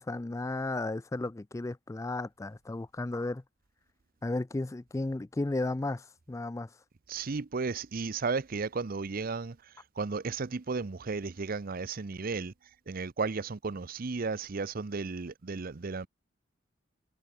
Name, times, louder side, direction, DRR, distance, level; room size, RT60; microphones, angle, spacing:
voice 1, 0.0-3.4 4.2-6.7, left 2 dB, 15° left, 0.4 m, -34 dB
voice 2, 7.1-9.6 10.0-12.5 12.9-16.1, right 4 dB, 50° right, 0.6 m, -34 dB
head